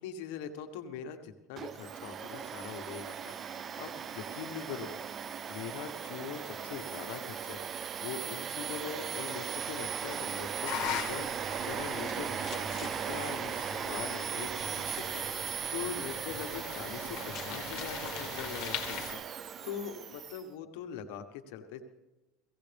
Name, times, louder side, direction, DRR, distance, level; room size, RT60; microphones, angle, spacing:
voice 1, 0.0-3.3 3.8-7.6 8.0-15.3 15.7-21.8, left 8 dB, 75° left, 6 dB, 1.3 m, -42 dB
Domestic sounds home sounds, 1.6-20.4, right 7 dB, 30° right, 0.4 m, -38 dB
sound 1, 10.7-19.1, left 10 dB, 60° left, 1.6 m, -41 dB
sound 2, 11.2-12.9 13.5-14.1 14.8-15.8 16.2-16.6 16.8-16.9 17.1-19.3, left 7 dB, 35° left, 2.3 m, -53 dB
17.0 x 16.5 x 3.5 m, 1.1 s
supercardioid pair, 135°, 0 cm